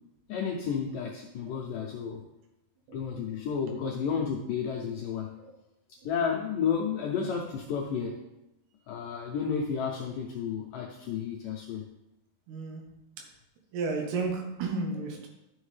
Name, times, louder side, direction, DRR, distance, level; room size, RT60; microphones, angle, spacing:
voice 1, 0.3-2.2 2.9-5.4 5.9-8.2 8.9-11.8, left 6 dB, 80° left, 0 dB, 1.9 m, -32 dB
voice 2, 12.5-12.8 13.7-15.3, right 3 dB, 85° right, 1 dB, 3.2 m, -32 dB
11.5 x 6.2 x 3.3 m, 0.91 s
omnidirectional pair, 4.6 m